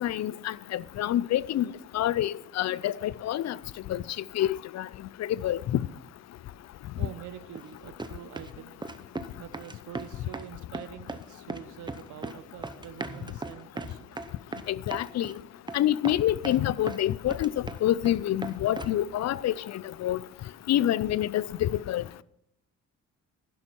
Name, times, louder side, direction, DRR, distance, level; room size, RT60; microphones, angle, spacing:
voice 1, 0.0-1.7 1.9-3.5 3.9-4.0 4.4-4.8 5.4-5.8 14.9-15.3 15.7-17.5 17.8-19.5 20.0-20.2 20.7-22.0, left 12 dB, 60° left, 0.5 m, -27 dB
voice 2, 7.0-8.8 9.4-14.2, right 11 dB, 80° right, 0.7 m, -45 dB
sound 1, 7.5-7.7 8.0-8.5 8.8-9.3 9.5-10.5 10.7-11.2 11.5-12.4 12.6-15.3 15.7-15.8 16.0-17.0 17.3-18.1 18.4-19.0, right 3 dB, 15° right, 0.8 m, -37 dB
11.5 x 11.0 x 4.5 m
cardioid pair, 90°, 30 cm